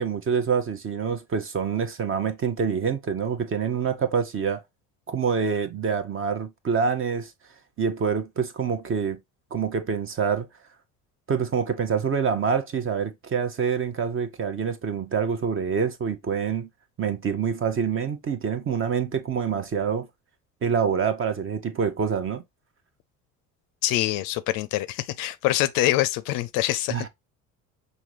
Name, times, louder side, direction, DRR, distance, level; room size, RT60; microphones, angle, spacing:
voice 1, 0.0-4.6 5.1-7.3 7.8-9.2 9.5-10.5 11.3-16.7 17.0-20.1 20.6-22.4 26.9-27.1, right 6 dB, 30° right, 0.8 m, -26 dB
voice 2, 23.8-27.0, left 15 dB, 50° left, 0.5 m, -25 dB
5.9 x 2.7 x 3.0 m
hypercardioid pair, 65°, 44 cm